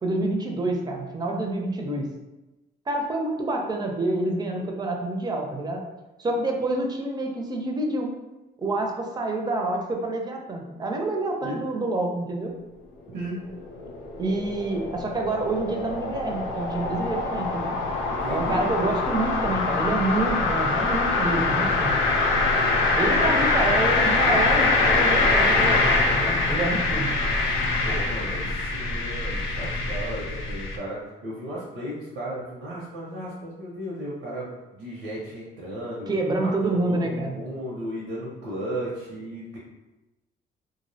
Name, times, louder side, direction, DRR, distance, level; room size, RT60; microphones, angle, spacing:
voice 1, 0.0-2.1 2.9-5.8 6.2-8.1 8.6-12.5 14.2-17.8 18.3-22.0 22.9-27.1 36.1-37.3, right 2 dB, 20° right, 2 dB, 0.4 m, -27 dB
sound 1, 13.2-30.8, left 3 dB, 80° left, 0.4 m, -24 dB
voice 2, 18.1-18.7 24.3-24.4 27.8-36.1 36.4-39.6, right 1 dB, 80° right, -5 dB, 0.6 m, -35 dB
2.4 x 2.0 x 2.6 m, 1.0 s
cardioid pair, 90°, 20 cm